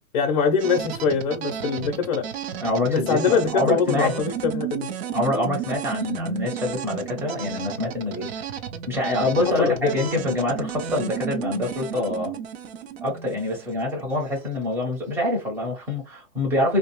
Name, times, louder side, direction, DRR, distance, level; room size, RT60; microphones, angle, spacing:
voice 1, 0.1-2.3 2.9-4.9 9.6-10.0, left 5 dB, 40° left, 0.6 m, -23 dB
sound 1, 0.6-14.5, right 7 dB, 50° right, 0.5 m, -33 dB
voice 2, 2.6-4.2 5.1-8.4 8.9-12.3 13.0-16.8, left 1 dB, 5° right, 0.8 m, -25 dB
2.5 x 2.0 x 2.9 m
hypercardioid pair, 135°, 42 cm